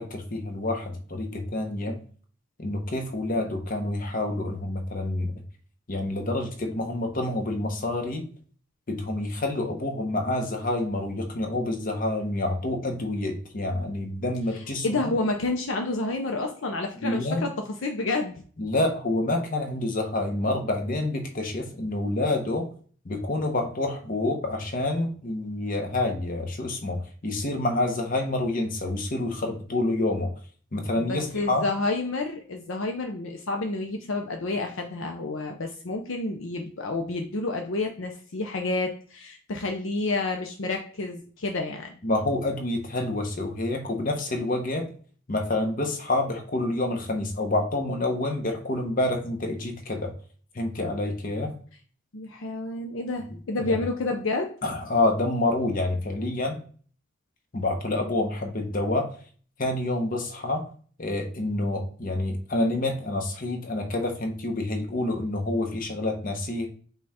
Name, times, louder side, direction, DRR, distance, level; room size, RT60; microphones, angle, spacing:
voice 1, 0.0-2.0 2.6-5.3 5.9-8.3 8.9-15.1 17.0-17.4 18.6-22.7 23.0-30.3 30.7-31.6 42.0-44.9 45.3-50.1 50.5-51.5 53.2-53.8 54.6-56.6 57.5-59.1 59.6-60.6 61.0-66.7, left 2 dB, 40° left, 4 dB, 0.9 m, -28 dB
voice 2, 14.8-18.3 31.0-42.0 52.1-54.5, left 2 dB, 65° left, 3 dB, 0.6 m, -29 dB
5.4 x 2.3 x 4.2 m, 0.43 s
head